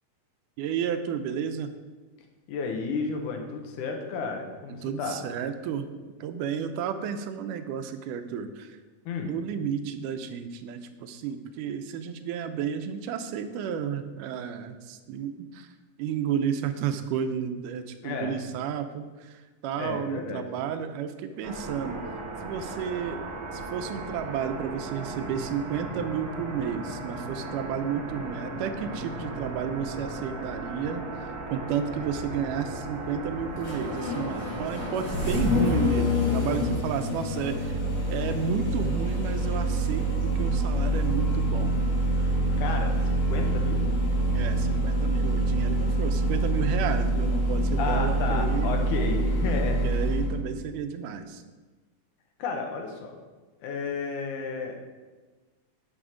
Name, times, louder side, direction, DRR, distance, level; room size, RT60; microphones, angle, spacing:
voice 1, 0.6-1.7 4.8-8.8 9.2-15.7 16.0-22.0 22.4-23.2 23.5-31.0 31.5-37.8 38.1-40.1 40.4-41.8 44.3-48.7 49.8-51.4, right 7 dB, 90° right, 9 dB, 2.2 m, -32 dB
voice 2, 2.5-5.2 9.1-9.3 18.0-18.4 19.8-20.5 42.2-43.9 47.8-49.9 52.4-53.2 53.6-54.8, left 4 dB, 80° left, 3 dB, 2.5 m, -32 dB
sound 1, 21.4-35.9, right 2 dB, 70° right, 2.9 m, -37 dB
Engine starting, 32.0-50.3, right 1 dB, 55° left, 3.4 m, -26 dB
7.6 x 7.0 x 4.9 m, 1.3 s
omnidirectional pair, 3.6 m